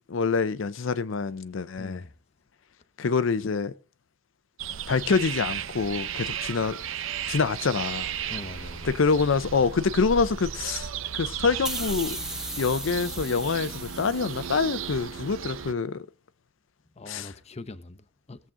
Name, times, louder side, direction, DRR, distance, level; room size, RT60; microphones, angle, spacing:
voice 1, 0.1-2.0 3.0-3.7 4.9-6.8 7.3-8.1 8.8-12.2 12.6-16.1 17.1-17.3, left 5 dB, 70° left, 0.5 m, -26 dB
voice 2, 1.8-2.1 8.3-8.9 11.1-11.3 17.0-18.5, left 2 dB, 35° left, 0.7 m, -42 dB
sound 1, 4.6-15.7, right 8 dB, 75° right, 0.6 m, -35 dB
sound 2, 11.6-15.0, right 1 dB, 5° right, 1.4 m, -37 dB
19.0 x 7.5 x 3.7 m
head